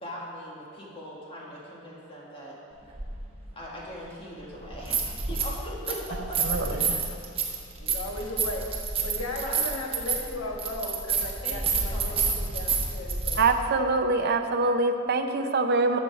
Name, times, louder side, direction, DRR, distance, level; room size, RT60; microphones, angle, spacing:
voice 1, 0.0-2.6 3.5-6.0 6.3-7.0 7.7-8.3 9.3-9.7 11.4-12.3, equal, 25° left, -5 dB, 1.8 m, -41 dB
sound 1, 3.0-3.1 4.6-5.6 5.9-13.4, right 5 dB, 25° right, 1.0 m, -29 dB
voice 2, 7.8-8.6 9.0-13.4, left 1 dB, 65° left, 0 dB, 1.4 m, -36 dB
voice 3, 13.4-16.0, right 3 dB, 45° right, 5 dB, 0.5 m, -24 dB
13.0 x 7.0 x 4.7 m, 2.5 s
head